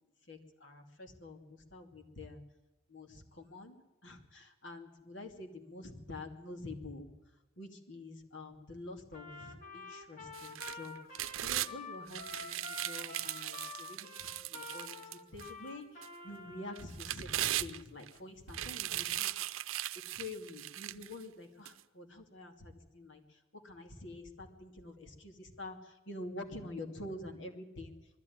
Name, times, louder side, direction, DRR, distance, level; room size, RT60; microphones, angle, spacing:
voice 1, 0.3-2.4 2.9-7.1 7.6-15.0 15.3-19.3 20.1-27.9, left 2 dB, 65° left, 4 dB, 2.7 m, -47 dB
Trumpet, 9.1-16.9, left 3 dB, 40° left, 2.9 m, -48 dB
sound 1, 10.3-11.7 12.1-15.5 16.0-16.1 16.8-18.1 18.5-21.1 21.7-21.8, right 13 dB, 90° right, 0.6 m, -38 dB
20.5 x 14.0 x 9.5 m, 1.0 s
head